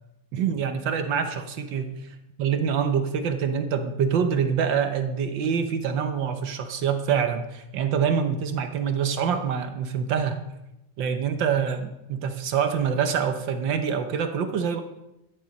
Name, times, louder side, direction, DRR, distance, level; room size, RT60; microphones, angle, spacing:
voice 1, 0.3-2.0 2.4-10.4 11.0-14.8, right 7 dB, 70° right, 7 dB, 1.6 m, -25 dB
13.5 x 10.0 x 5.3 m, 0.92 s
omnidirectional pair, 2.1 m